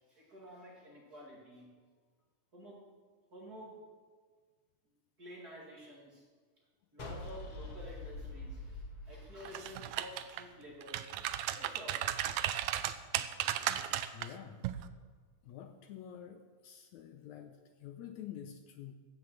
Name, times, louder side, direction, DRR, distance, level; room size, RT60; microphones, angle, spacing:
voice 1, 0.1-1.7 2.5-2.9 3.3-3.9 5.2-6.2 6.9-12.3, equal, 30° right, -3 dB, 2.3 m, -51 dB
sound 1, 7.0-10.2, left 2 dB, 50° left, 2.2 m, -45 dB
sound 2, 9.5-10.4 10.8-14.3 14.6-14.9, right 12 dB, 80° right, 1.7 m, -35 dB
voice 2, 14.1-14.7 15.4-18.9, left 9 dB, 75° left, 7 dB, 1.9 m, -48 dB
15.5 x 6.5 x 7.4 m, 1.5 s
omnidirectional pair, 3.7 m